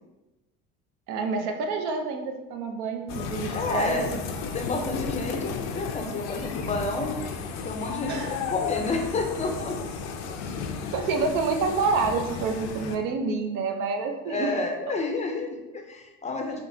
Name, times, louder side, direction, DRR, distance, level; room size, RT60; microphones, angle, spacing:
voice 1, 1.1-4.2 8.1-8.3 10.9-14.5, right 4 dB, 75° right, 4 dB, 0.6 m, -28 dB
sound 1, 3.1-12.9, left 6 dB, 80° left, 0.5 m, -34 dB
voice 2, 3.5-4.1 4.4-7.2 7.6-9.8 10.2-10.3 14.3-16.6, left 2 dB, 25° left, 3 dB, 0.4 m, -30 dB
3.6 x 2.8 x 2.6 m, 1.1 s
supercardioid pair, 110°, 31 cm